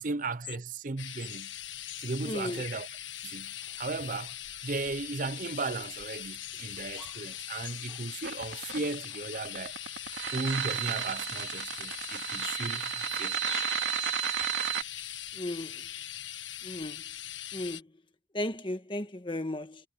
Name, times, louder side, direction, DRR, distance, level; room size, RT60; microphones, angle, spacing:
voice 1, 0.0-1.5 2.0-2.9 3.2-4.4 4.6-9.7 10.3-13.4, right 3 dB, 45° right, 0.6 m, -36 dB
sound 1, 1.0-17.8, left 11 dB, 90° left, 1.5 m, -41 dB
voice 2, 2.2-2.6 15.4-15.8 16.6-17.0 17.5-17.8 18.3-19.8, left 1 dB, 25° left, 1.5 m, -35 dB
sound 2, 3.5-10.4, right 3 dB, 10° right, 4.9 m, -58 dB
sound 3, 8.2-14.8, right 9 dB, 75° right, 2.4 m, -33 dB
head